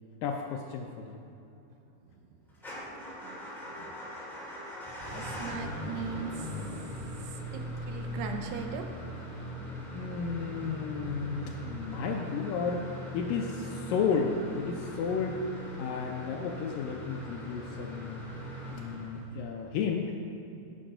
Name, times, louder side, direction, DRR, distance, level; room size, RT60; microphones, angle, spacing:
voice 1, 0.2-1.2 9.9-12.9 13.1-15.4 15.8-18.2 18.7-20.1, left 5 dB, 90° left, 1 dB, 1.9 m, -33 dB
Motor vehicle (road) / Engine starting / Idling, 2.6-19.5, equal, ahead, 1.7 m, -40 dB
voice 2, 3.2-3.9 5.1-6.6 7.2-8.9, right 6 dB, 80° right, 4 dB, 3.0 m, -40 dB
10.0 x 9.7 x 5.5 m, 2.8 s
omnidirectional pair, 4.8 m